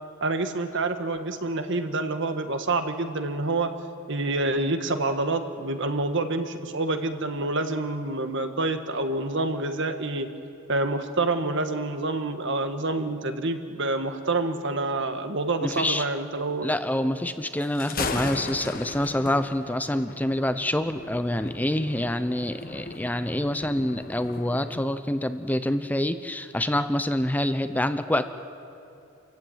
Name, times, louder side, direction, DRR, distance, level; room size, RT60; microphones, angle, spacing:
voice 1, 0.2-3.7 4.1-10.3 10.7-16.7, right 2 dB, 60° right, 7 dB, 1.6 m, -27 dB
voice 2, 15.6-16.0 16.6-28.3, left 1 dB, 10° left, 10 dB, 0.6 m, -26 dB
Thunder, 17.6-24.8, left 3 dB, 45° left, 1.4 m, -37 dB
27.5 x 15.0 x 9.2 m, 2.9 s
head